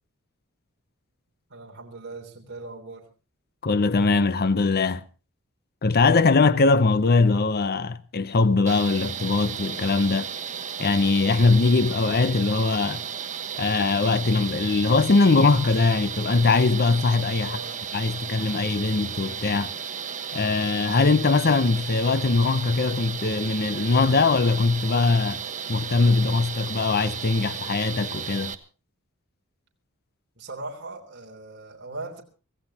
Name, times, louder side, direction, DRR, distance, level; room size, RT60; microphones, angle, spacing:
voice 1, 1.5-3.1 17.4-17.8 30.4-32.2, right 2 dB, 55° right, 3.4 m, -39 dB
voice 2, 3.6-5.0 5.8-10.3 10.8-13.0 13.6-17.6 17.9-19.7 20.3-25.4 25.7-28.6, left 3 dB, 45° left, 0.7 m, -21 dB
sound 1, 8.7-28.5, right 7 dB, 35° right, 1.3 m, -34 dB
25.0 x 16.0 x 2.9 m
head